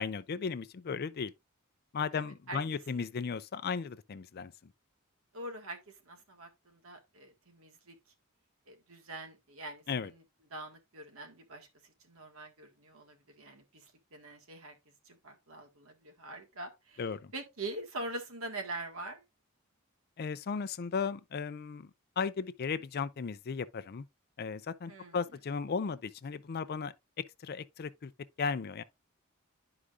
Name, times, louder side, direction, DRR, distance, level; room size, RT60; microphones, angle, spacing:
voice 1, 0.0-1.3 1.9-4.5 9.9-10.1 17.0-17.3 20.2-21.9 22.2-24.1 24.4-28.1 28.4-28.8, left 5 dB, 45° left, 0.4 m, -35 dB
voice 2, 2.1-2.6 3.0-3.1 5.3-8.0 8.7-10.2 10.5-14.7 15.0-19.2 24.9-25.2, right 2 dB, 70° right, 1.6 m, -44 dB
11.5 x 4.8 x 2.4 m
head